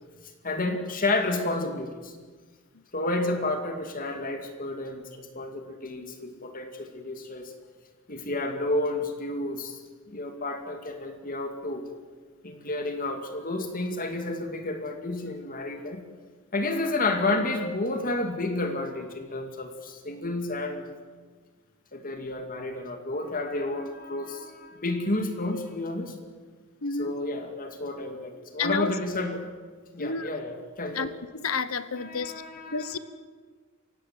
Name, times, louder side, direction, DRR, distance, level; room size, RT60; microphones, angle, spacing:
voice 1, 0.4-2.1 2.9-7.5 8.1-9.8 10.1-11.9 12.4-16.0 16.5-20.9 21.9-26.1 27.0-29.4 29.9-31.1 31.9-33.0, left 2 dB, 40° left, 5 dB, 2.5 m, -31 dB
voice 2, 26.8-27.2 28.6-28.9 30.0-30.3 30.9-32.3 32.7-33.0, left 4 dB, 80° left, 14 dB, 1.2 m, -30 dB
28.5 x 16.5 x 7.8 m, 1.4 s
head